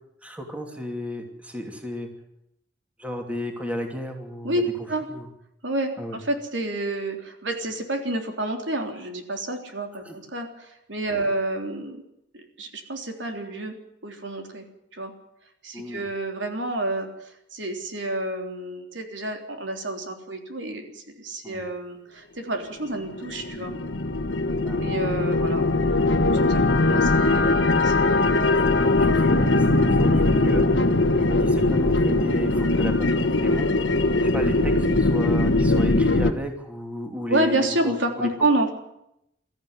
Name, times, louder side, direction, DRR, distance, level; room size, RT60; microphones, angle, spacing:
voice 1, 0.2-2.1 3.0-4.6 5.1-5.3 6.0-6.2 10.0-10.2 11.1-11.3 15.7-16.1 21.4-21.6 24.6-24.9 28.5-30.6 31.3-33.7 34.2-38.3, left 1 dB, 5° right, 3 dB, 2.8 m, -33 dB
voice 2, 5.6-12.0 12.3-13.7 14.0-14.6 14.9-15.1 15.6-17.1 17.5-23.7 24.8-28.6 29.4-29.5 37.3-38.7, right 1 dB, 80° right, 4 dB, 3.5 m, -29 dB
sound 1, 22.9-36.3, left 2 dB, 75° left, 1.4 m, -21 dB
22.5 x 14.0 x 9.8 m, 0.82 s
head